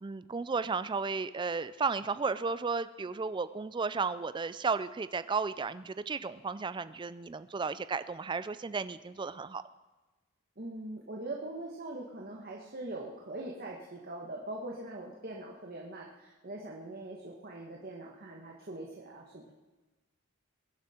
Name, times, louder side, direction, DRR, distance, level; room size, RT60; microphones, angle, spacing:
voice 1, 0.0-9.6, right 4 dB, 25° right, 14 dB, 0.4 m, -34 dB
voice 2, 10.6-19.5, right 2 dB, 45° right, -1 dB, 1.5 m, -42 dB
21.5 x 11.5 x 4.4 m, 1.2 s
head